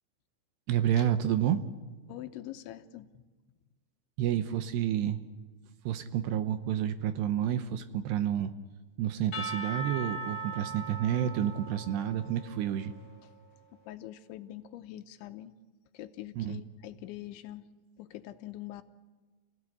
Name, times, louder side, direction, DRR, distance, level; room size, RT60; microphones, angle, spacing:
voice 1, 0.7-1.6 4.2-5.2 5.9-8.5 9.0-12.9 16.4-16.6, right 10 dB, 75° right, 10 dB, 2.8 m, -29 dB
voice 2, 2.1-3.2 13.8-15.6 15.9-17.7 18.0-18.8, left 14 dB, 80° left, 9 dB, 3.2 m, -44 dB
Percussion / Church bell, 9.3-13.3, right 2 dB, 35° left, 2.1 m, -40 dB
29.0 x 17.0 x 9.9 m, 1.3 s
omnidirectional pair, 5.5 m